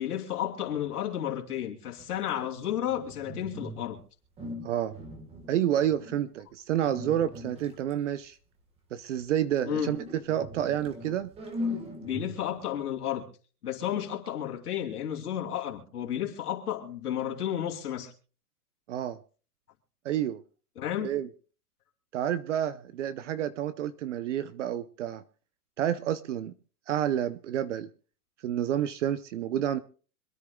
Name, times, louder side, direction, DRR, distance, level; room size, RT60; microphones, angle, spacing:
voice 1, 0.0-4.0 9.7-9.9 12.0-13.3 13.6-18.1 20.8-21.1, left 10 dB, 75° left, 3.1 m, -32 dB
sound 1, 2.0-4.0 4.4-6.3 6.8-7.9 9.6-12.6, left 1 dB, 15° right, 1.5 m, -40 dB
voice 2, 4.6-4.9 5.5-8.4 8.9-10.0 10.3-11.3 18.9-19.2 20.0-20.4 21.0-21.3 22.1-25.2 25.8-26.5 26.9-27.9 28.4-29.8, right 11 dB, 50° right, 0.8 m, -29 dB
26.0 x 9.9 x 2.3 m
hypercardioid pair, 150°, 46 cm